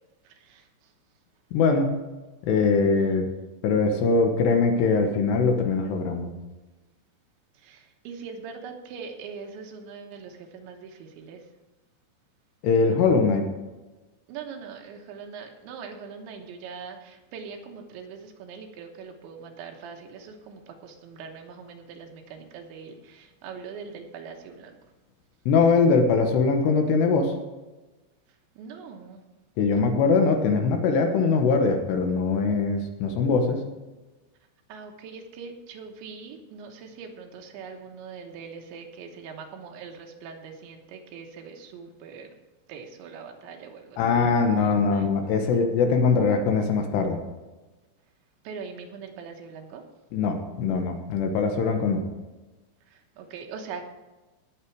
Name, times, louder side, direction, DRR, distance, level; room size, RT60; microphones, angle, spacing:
voice 1, 0.2-0.9 7.6-11.4 14.3-24.8 28.6-29.2 34.7-42.3 42.7-44.0 44.5-45.1 48.4-49.8 52.9-53.8, right 5 dB, 80° right, 3 dB, 3.4 m, -42 dB
voice 2, 1.5-1.9 2.4-3.3 3.6-6.3 12.6-13.4 25.5-27.3 29.6-33.6 44.0-47.2 50.1-52.0, left 4 dB, 70° left, 5 dB, 3.0 m, -22 dB
18.5 x 6.8 x 4.7 m, 1.1 s
omnidirectional pair, 5.4 m